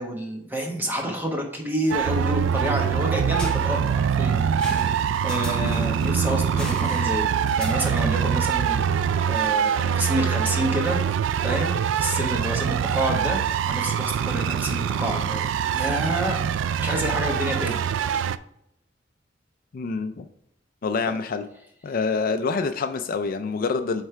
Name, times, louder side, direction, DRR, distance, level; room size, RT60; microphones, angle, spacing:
voice 1, 0.0-9.0 9.3-13.4 13.7-16.4 16.8-17.8 18.1-18.2 21.0-21.1, equal, 10° right, 1 dB, 1.2 m, -29 dB
sound 1, 1.9-18.4, right 8 dB, 90° right, 0.3 m, -24 dB
sound 2, 3.3-8.3, left 1 dB, 5° left, 0.9 m, -39 dB
voice 2, 19.7-20.3 20.8-21.5 21.8-24.0, left 4 dB, 50° left, 8 dB, 0.4 m, -26 dB
8.0 x 3.3 x 4.5 m, 0.77 s
head